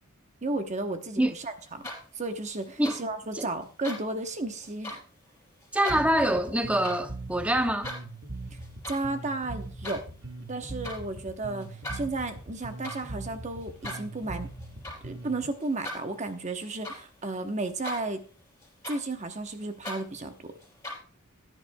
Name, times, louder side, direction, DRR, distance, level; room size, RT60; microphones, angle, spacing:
voice 1, 0.4-1.8 2.1-5.0 8.9-10.1 10.5-14.5 15.0-18.2 18.9-20.5, right 2 dB, 30° right, 0.9 m, -33 dB
sound 1, 1.6-2.3 2.6-3.0 3.6-4.0 4.6-5.0 5.6-6.0 6.6-7.0 7.4-8.0 8.5-9.0 9.4-10.0 10.6-11.0 11.6-17.3 17.6-18.3 18.6-21.0, left 1 dB, 15° left, 4.8 m, -41 dB
voice 2, 5.7-7.9, right 1 dB, 5° right, 0.6 m, -25 dB
Bass guitar, 5.9-15.5, right 2 dB, 55° right, 1.4 m, -41 dB
15.0 x 9.9 x 2.2 m
head